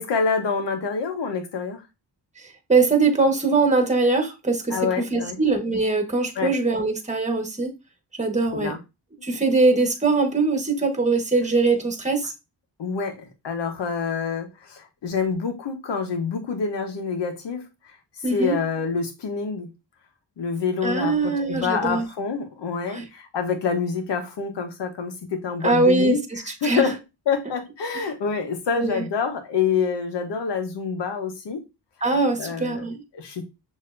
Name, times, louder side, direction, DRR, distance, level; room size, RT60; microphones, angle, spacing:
voice 1, 0.0-1.8 4.7-5.4 6.3-6.5 8.5-8.8 12.8-17.6 18.3-19.7 20.4-26.2 26.6-27.0 27.3-31.6 32.4-32.8 33.1-33.5, left 5 dB, 85° left, 1.1 m, -27 dB
voice 2, 2.7-7.7 8.2-8.7 9.2-12.3 18.2-18.6 20.8-22.1 22.9-23.1 25.6-26.9 28.8-29.0 32.0-33.0, right 3 dB, 15° right, 1.3 m, -22 dB
6.5 x 2.9 x 2.6 m
cardioid pair, 70°, 41 cm